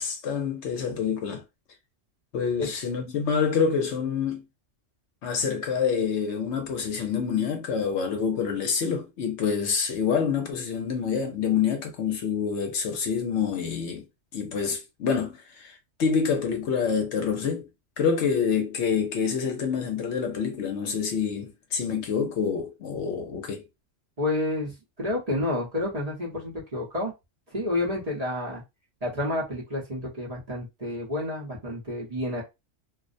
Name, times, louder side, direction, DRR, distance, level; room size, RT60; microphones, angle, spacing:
voice 1, 0.0-1.4 2.3-4.4 5.2-14.0 14.3-17.7 18.0-23.6, left 6 dB, 70° left, 0.8 m, -27 dB
voice 2, 24.2-27.1 27.5-28.6 29.0-32.4, left 1 dB, 35° right, 0.8 m, -29 dB
2.4 x 2.0 x 2.5 m
omnidirectional pair, 1.3 m